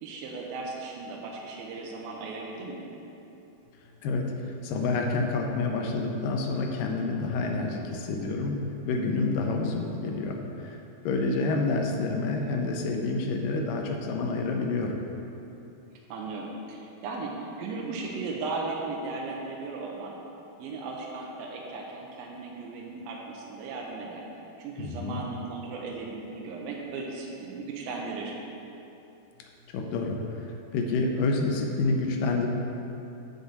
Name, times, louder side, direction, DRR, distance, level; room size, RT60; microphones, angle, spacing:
voice 1, 0.0-2.9 11.3-11.6 16.1-20.2 20.6-24.2 24.6-28.4, right 3 dB, 75° right, -2 dB, 2.5 m, -36 dB
voice 2, 4.0-8.6 8.8-10.8 11.0-15.0 24.8-25.2 29.7-32.5, left 3 dB, 80° left, 2 dB, 2.0 m, -28 dB
6.5 x 6.4 x 6.9 m, 2.9 s
omnidirectional pair, 4.6 m